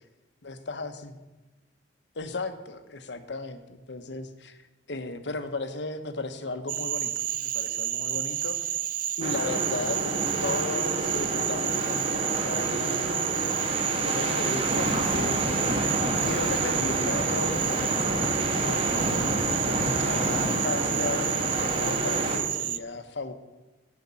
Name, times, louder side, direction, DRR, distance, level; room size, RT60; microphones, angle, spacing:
voice 1, 0.4-1.1 2.1-4.6 4.9-7.1 7.4-8.8 9.2-10.1 10.4-13.2 13.8-15.9 16.2-17.8 18.6-19.4 19.9-23.3, left 3 dB, 75° left, 9 dB, 0.9 m, -35 dB
Cricket / Frog, 6.7-22.8, right 12 dB, 45° right, 0.4 m, -30 dB
sound 1, 9.2-22.4, right 1 dB, 30° right, 1.5 m, -29 dB
11.0 x 5.2 x 8.4 m, 1.1 s
head